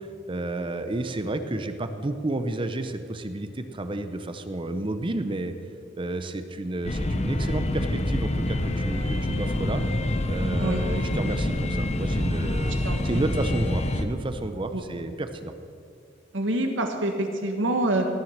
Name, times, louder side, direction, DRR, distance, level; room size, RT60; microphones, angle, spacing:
voice 1, 0.0-5.5 6.0-9.8 10.3-12.8 13.0-15.5, right 2 dB, 25° right, 9 dB, 0.6 m, -31 dB
sound 1, 6.8-14.0, left 1 dB, 35° left, 0.8 m, -26 dB
voice 2, 12.8-13.3 14.7-14.8 16.3-18.1, right 1 dB, 80° right, 4 dB, 1.6 m, -26 dB
17.5 x 7.4 x 6.6 m, 2.3 s
head